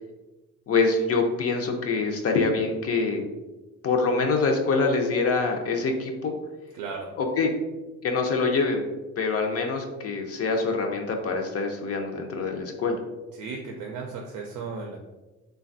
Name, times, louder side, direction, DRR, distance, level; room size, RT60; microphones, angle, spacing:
voice 1, 0.7-3.3 3.8-6.3 7.2-7.5 8.0-8.9 9.2-13.0, left 4 dB, 50° left, 3 dB, 0.5 m, -25 dB
voice 2, 6.7-7.1 13.4-15.0, right 4 dB, 85° right, 1 dB, 0.5 m, -35 dB
3.2 x 2.2 x 2.5 m, 1.1 s
cardioid pair, 90°, 30 cm